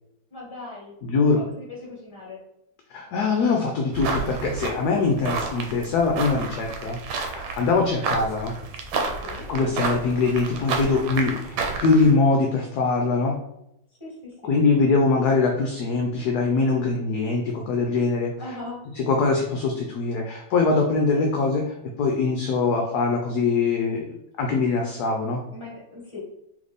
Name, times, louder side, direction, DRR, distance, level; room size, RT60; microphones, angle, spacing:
voice 1, 0.3-2.4 7.5-7.9 9.2-9.5 14.0-14.8 18.4-18.8 25.5-26.2, left 2 dB, 15° left, -4 dB, 1.4 m, -39 dB
voice 2, 1.0-1.4 2.9-7.0 7.6-8.5 9.5-13.3 14.5-18.3 19.1-21.7 22.0-24.0 24.4-25.4, left 4 dB, 70° left, 1 dB, 1.0 m, -22 dB
sound 1, 3.9-12.1, right 4 dB, 80° right, 1.4 m, -30 dB
4.0 x 3.3 x 3.4 m, 0.82 s
omnidirectional pair, 2.1 m